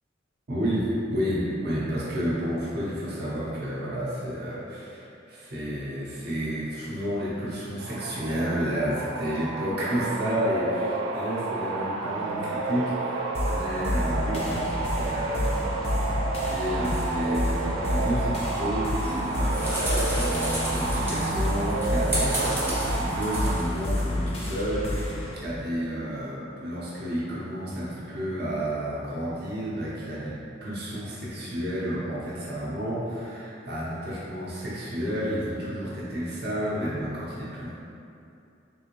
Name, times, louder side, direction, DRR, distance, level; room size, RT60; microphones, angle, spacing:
voice 1, 0.5-15.5 16.5-30.3 30.6-37.7, equal, 55° right, -8 dB, 0.7 m, -31 dB
sound 1, 7.8-23.6, right 3 dB, 80° right, 0.3 m, -31 dB
sound 2, 13.3-25.3, left 1 dB, 30° left, 0.4 m, -29 dB
sound 3, 19.0-24.0, equal, 10° right, 0.8 m, -32 dB
3.5 x 2.5 x 2.9 m, 2.6 s
head